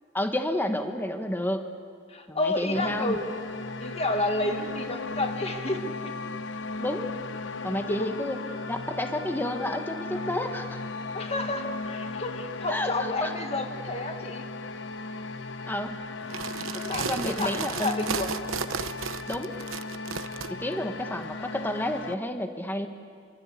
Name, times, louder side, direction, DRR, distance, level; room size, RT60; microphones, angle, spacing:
voice 1, 0.1-1.6 2.3-3.1 6.8-7.1 7.6-8.4 8.7-10.8 12.7-13.3 15.7-15.9 17.0-18.2 19.3-19.5 20.5-22.9, left 1 dB, 10° left, 6 dB, 1.3 m, -30 dB
voice 2, 2.1-3.3 3.8-6.1 7.9-8.1 11.1-14.5 16.7-18.3 20.5-20.6, left 2 dB, 30° left, 5 dB, 1.9 m, -30 dB
sound 1, 2.7-22.1, left 3 dB, 65° left, 1.0 m, -37 dB
sound 2, 16.2-20.5, right 6 dB, 85° right, 1.0 m, -34 dB
27.5 x 23.5 x 8.3 m, 2.3 s
head